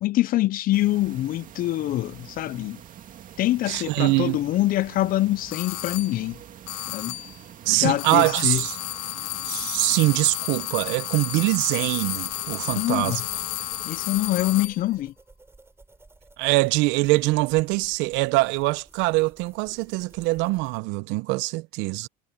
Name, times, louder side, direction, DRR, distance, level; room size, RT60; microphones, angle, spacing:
voice 1, 0.0-2.8 3.4-6.4 6.9-7.2 7.7-8.6 12.7-13.2 13.8-15.1, left 15 dB, 45° left, 0.6 m, -25 dB
sound 1, 0.7-14.6, right 10 dB, 40° right, 2.3 m, -45 dB
voice 2, 3.7-4.4 7.7-8.8 9.4-13.2 16.4-22.1, right 22 dB, 65° right, 0.8 m, -23 dB
sound 2, 5.5-6.2 6.7-7.4 8.0-14.8, left 22 dB, 70° left, 1.5 m, -32 dB
sound 3, 11.9-20.8, right 3 dB, 10° right, 4.7 m, -54 dB
supercardioid pair, 110°, 20 cm